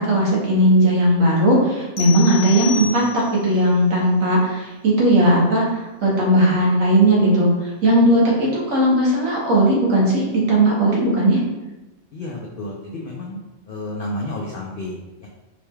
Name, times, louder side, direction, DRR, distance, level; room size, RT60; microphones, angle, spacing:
voice 1, 0.0-11.4, right 1 dB, 70° right, -4 dB, 1.4 m, -17 dB
sound 1, 2.0-3.5, left 8 dB, 85° left, 1.1 m, -30 dB
voice 2, 12.1-13.4 13.7-15.3, left 1 dB, 70° left, -2 dB, 0.5 m, -31 dB
4.9 x 3.1 x 2.3 m, 1.1 s
omnidirectional pair, 1.5 m